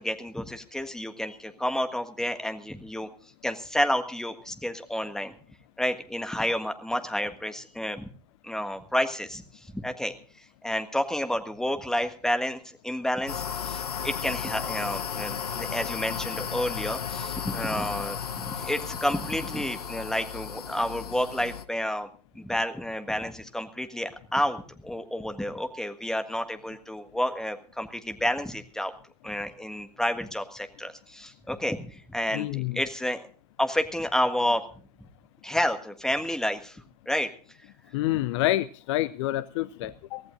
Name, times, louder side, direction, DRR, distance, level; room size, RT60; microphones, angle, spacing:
voice 1, 0.0-3.1 3.4-5.3 5.8-8.1 8.4-9.4 9.7-10.1 10.6-22.1 22.3-28.9 29.2-33.2 33.6-34.6 35.4-37.3, left 1 dB, ahead, 7 dB, 1.5 m, -30 dB
sound 1, 13.3-21.6, left 7 dB, 70° left, 0.9 m, -34 dB
voice 2, 32.3-32.8 37.9-40.2, left 15 dB, 45° left, 18 dB, 0.6 m, -28 dB
23.5 x 17.0 x 2.5 m, 0.42 s
figure-of-eight pair, 90°, 20 cm